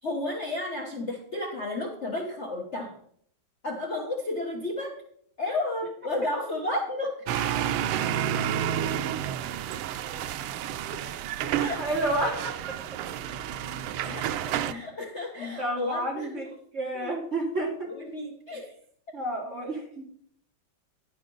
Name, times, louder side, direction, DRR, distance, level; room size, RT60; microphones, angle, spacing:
voice 1, 0.0-2.9 3.6-4.9 5.4-7.7 11.6-11.8 14.0-16.4 16.9-17.2 17.9-18.7, left 2 dB, 40° left, 0 dB, 1.3 m, -32 dB
sound 1, 7.3-14.7, right 10 dB, 90° right, 1.5 m, -30 dB
voice 2, 11.7-12.5 15.6-16.5 16.7-17.9 19.1-20.1, right 1 dB, 35° right, -2 dB, 3.2 m, -30 dB
10.5 x 9.2 x 3.9 m, 0.63 s
omnidirectional pair, 2.3 m